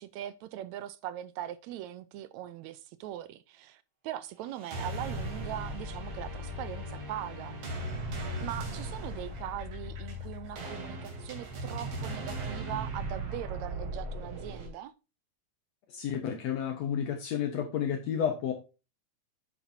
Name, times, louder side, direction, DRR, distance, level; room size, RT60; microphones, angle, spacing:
voice 1, 0.0-7.6 8.4-14.9, right 12 dB, 80° right, 1.9 m, -40 dB
sound 1, 4.5-14.7, right 1 dB, 55° right, 3.4 m, -38 dB
voice 2, 15.9-18.5, left 8 dB, 70° left, 2.2 m, -31 dB
10.0 x 8.6 x 2.7 m
omnidirectional pair, 3.3 m